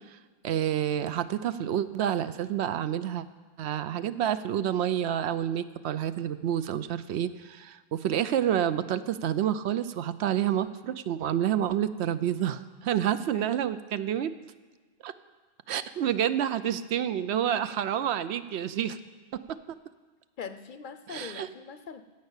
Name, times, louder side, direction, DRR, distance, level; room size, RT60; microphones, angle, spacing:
voice 1, 0.4-3.2 3.6-14.3 15.0-15.1 15.7-19.0 21.1-21.5, right 10 dB, 85° right, 13 dB, 0.9 m, -28 dB
voice 2, 20.4-22.0, left 6 dB, 55° left, 10 dB, 0.7 m, -42 dB
16.5 x 5.6 x 8.1 m, 1.4 s
omnidirectional pair, 1.1 m